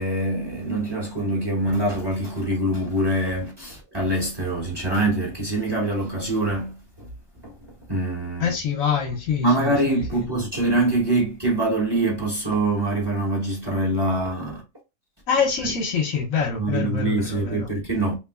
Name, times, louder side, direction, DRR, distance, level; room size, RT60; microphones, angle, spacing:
voice 1, 0.0-6.8 7.4-7.5 7.9-8.5 9.4-14.6 16.5-18.1, right 2 dB, 20° right, 1.3 m, -24 dB
voice 2, 8.4-10.3 15.3-17.7, left 6 dB, 70° left, 1.3 m, -25 dB
3.5 x 2.9 x 2.4 m
omnidirectional pair, 1.5 m